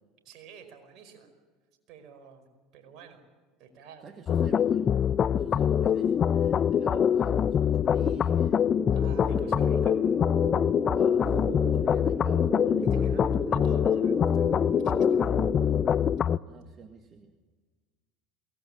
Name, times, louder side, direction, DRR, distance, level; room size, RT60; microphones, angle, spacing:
voice 1, 0.2-1.3 1.9-2.5 2.7-3.2 3.6-4.1 8.9-10.0 12.8-15.4, right 6 dB, 60° right, 6 dB, 5.1 m, -50 dB
voice 2, 4.0-4.9 5.4-8.6 9.2-9.8 10.9-13.1 16.4-17.3, right 6 dB, 40° right, 6 dB, 1.9 m, -48 dB
sound 1, 4.3-16.4, left 8 dB, 40° left, 0.6 m, -24 dB
sound 2, 8.7-16.0, right 3 dB, 15° right, 0.8 m, -36 dB
23.0 x 19.0 x 8.8 m, 1.4 s
hypercardioid pair, 80°, 0 cm